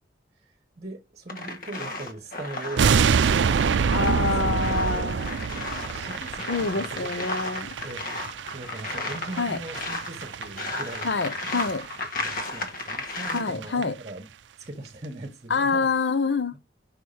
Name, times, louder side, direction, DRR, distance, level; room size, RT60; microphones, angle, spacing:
voice 1, 0.4-4.5 4.9-5.1 5.9-7.1 7.8-11.1 11.4-11.6 12.1-14.2 14.6-15.9, right 2 dB, 35° right, 1.2 m, -40 dB
sound 1, 1.3-13.5, left 2 dB, 50° left, 1.5 m, -34 dB
sound 2, 2.8-11.9 12.2-12.4 12.8-12.9 13.2-13.3 13.5-13.8 14.1-14.2, right 6 dB, 85° right, 0.4 m, -26 dB
voice 2, 3.9-5.3 6.5-7.7 9.4-9.6 11.0-11.8 13.3-13.9 15.5-16.6, left 4 dB, 80° left, 0.7 m, -26 dB
5.9 x 4.6 x 5.7 m
head